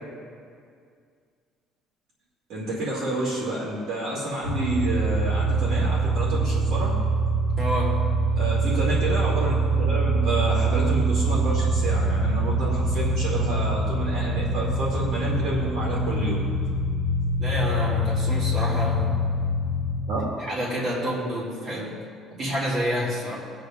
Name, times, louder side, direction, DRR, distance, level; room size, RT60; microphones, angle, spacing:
voice 1, 2.5-7.0 8.4-16.5 20.0-20.3, right 1 dB, 60° right, -5 dB, 2.5 m, -29 dB
sound 1, 4.4-20.0, right 2 dB, 20° right, 1.3 m, -24 dB
voice 2, 7.6-8.1 17.4-19.3 20.4-22.0 22.3-23.4, equal, 40° right, -5 dB, 3.2 m, -28 dB
23.0 x 8.2 x 2.6 m, 2.2 s
cardioid pair, 165°, 0 cm